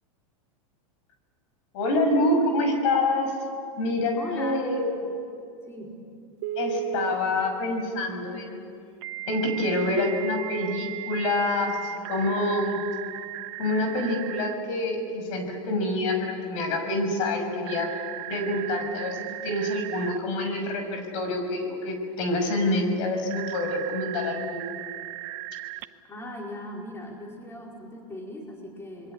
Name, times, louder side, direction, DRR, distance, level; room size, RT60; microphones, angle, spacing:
voice 1, 1.7-3.3 3.8-5.0 6.6-8.6 9.3-12.8 13.6-17.9 18.3-24.7, left 2 dB, 65° left, 5 dB, 6.2 m, -26 dB
voice 2, 4.2-4.6 5.7-6.0 26.0-29.1, left 1 dB, 15° left, -1 dB, 4.7 m, -39 dB
Telephone, 6.4-7.2 9.0-14.5 17.6-20.2 23.3-25.8, right 15 dB, 55° right, 0.9 m, -36 dB
27.5 x 22.0 x 8.7 m, 2.4 s
hypercardioid pair, 115°, 18 cm